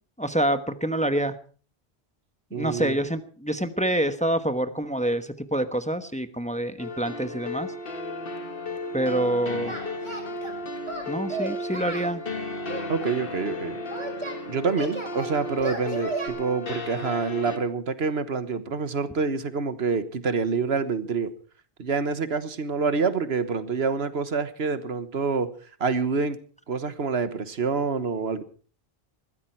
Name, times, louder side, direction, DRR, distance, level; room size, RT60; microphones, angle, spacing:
voice 1, 0.2-1.4 2.5-7.7 8.9-9.7 11.1-12.2, right 1 dB, 5° left, 10 dB, 1.1 m, -26 dB
voice 2, 2.5-3.0 12.9-13.8 14.5-21.3 21.8-25.5 25.8-26.4 26.7-28.4, right 5 dB, 85° right, 13 dB, 1.5 m, -27 dB
sound 1, 6.8-17.6, left 1 dB, 60° left, 1.8 m, -34 dB
Singing, 9.6-10.5 10.9-12.1 12.7-14.4 14.8-16.3, right 2 dB, 25° right, 5.5 m, -34 dB
21.0 x 15.5 x 4.5 m, 0.42 s
omnidirectional pair, 1.0 m